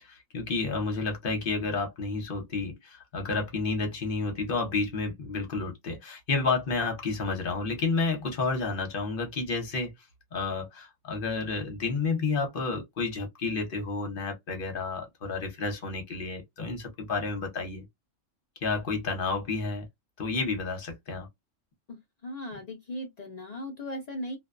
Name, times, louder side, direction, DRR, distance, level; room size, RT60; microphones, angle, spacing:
voice 1, 0.0-9.9 10.3-17.8 18.6-19.9 20.2-21.3, left 4 dB, 50° left, 0.9 m, -30 dB
voice 2, 21.9-24.4, left 1 dB, 70° left, 0.3 m, -38 dB
2.4 x 2.1 x 2.3 m
omnidirectional pair, 1.3 m